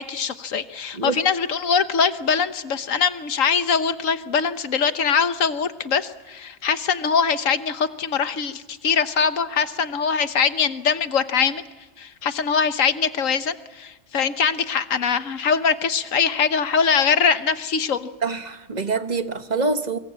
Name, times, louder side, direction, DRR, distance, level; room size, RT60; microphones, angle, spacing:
voice 1, 0.0-11.6 12.0-18.1, left 6 dB, 75° left, 1.5 m, -22 dB
voice 2, 18.2-20.0, right 4 dB, 35° right, 1.1 m, -25 dB
24.5 x 22.5 x 8.4 m
omnidirectional pair, 1.4 m